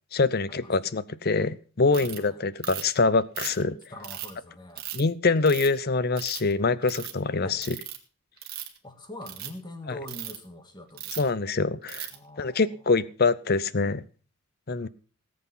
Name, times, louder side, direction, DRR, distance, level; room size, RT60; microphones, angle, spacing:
voice 1, 0.1-3.8 4.9-7.8 9.9-10.0 11.1-12.1 12.4-14.0 14.7-14.9, left 3 dB, 45° left, 17 dB, 0.7 m, -25 dB
voice 2, 1.9-2.4 3.9-4.9 7.4-7.6 8.8-11.2 12.1-12.7, left 1 dB, 20° left, 7 dB, 2.0 m, -43 dB
Ratchet pawl, 1.9-2.2 2.6-3.0 3.4-4.3 4.8-5.0 5.5-5.8 6.2-6.5 6.8-7.1 7.6-8.0 8.4-8.8 9.2-9.5 10.1-10.4 11.0-11.3 11.9-12.2, right 12 dB, 45° right, 2.2 m, -37 dB
18.5 x 7.9 x 5.6 m, 0.38 s
head